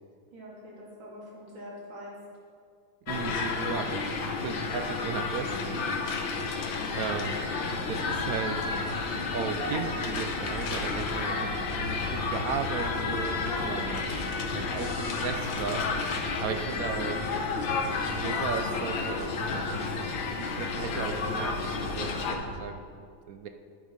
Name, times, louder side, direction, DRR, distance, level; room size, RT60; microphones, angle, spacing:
voice 1, 0.3-2.2 5.8-6.4 11.2-11.5 13.6-13.7, equal, 85° right, -5 dB, 3.6 m, -44 dB
sound 1, 3.1-22.4, left 4 dB, 80° left, 1.8 m, -31 dB
voice 2, 3.1-5.8 6.9-8.7 9.3-11.5 11.9-17.3 17.9-23.5, right 6 dB, 65° right, 6 dB, 0.9 m, -36 dB
sound 2, 7.7-22.6, equal, 50° left, 2.2 m, -42 dB
10.5 x 8.9 x 5.1 m, 2.3 s
omnidirectional pair, 2.1 m